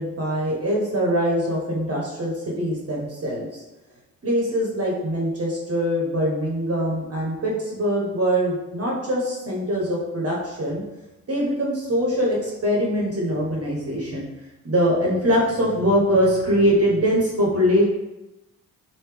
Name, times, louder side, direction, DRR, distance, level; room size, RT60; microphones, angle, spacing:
voice 1, 0.0-3.6 4.2-10.8 11.3-14.3 14.6-17.8, equal, 40° right, -3 dB, 0.9 m, -23 dB
3.3 x 2.6 x 3.3 m, 1.0 s
cardioid pair, 90°, 37 cm